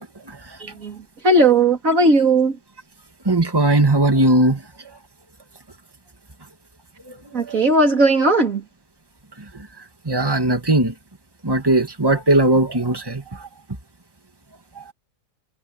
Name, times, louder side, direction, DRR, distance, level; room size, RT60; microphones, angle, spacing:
voice 1, 0.6-1.0 1.2-2.6 7.3-8.6, right 2 dB, 75° right, 3.6 m, -17 dB
voice 2, 3.3-4.6 7.1-7.2 7.5-7.6 10.1-10.9 11.4-13.2 14.8-14.9, right 2 dB, 15° right, 2.2 m, -18 dB
omnidirectional pair, 1.4 m